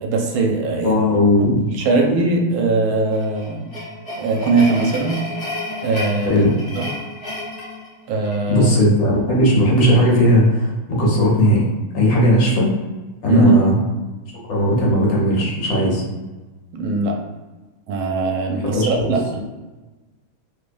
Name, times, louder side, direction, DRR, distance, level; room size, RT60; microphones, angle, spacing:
voice 1, 0.0-1.0 1.6-3.7 4.2-5.2 5.8-6.4 6.8-6.9 8.1-8.7 13.3-13.7 16.7-17.2 17.9-19.4, right 3 dB, 75° right, 1 dB, 1.4 m, -20 dB
voice 2, 0.8-1.7 6.3-6.5 8.5-11.7 11.9-12.7 13.2-13.7 14.5-16.0 18.7-19.1, equal, 60° left, -4 dB, 1.7 m, -17 dB
sound 1, 3.1-8.6, left 1 dB, 30° left, 1.4 m, -31 dB
3.4 x 3.4 x 2.5 m, 1.2 s
omnidirectional pair, 2.4 m